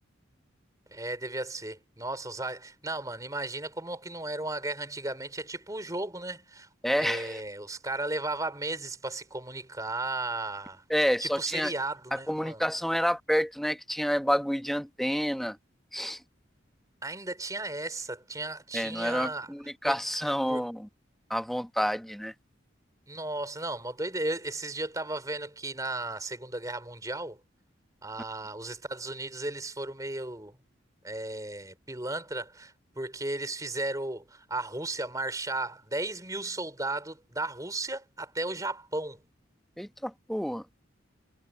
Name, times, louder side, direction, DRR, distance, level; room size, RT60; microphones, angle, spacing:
voice 1, 0.9-6.7 7.0-10.8 11.2-12.6 17.0-19.5 19.8-20.0 20.5-20.6 23.1-27.4 28.0-30.6 31.0-39.2, right 2 dB, 15° right, 4.3 m, -35 dB
voice 2, 6.8-7.4 10.9-11.7 12.1-15.6 15.9-16.2 18.7-20.9 21.3-22.3 39.8-40.6, equal, ahead, 1.2 m, -29 dB
head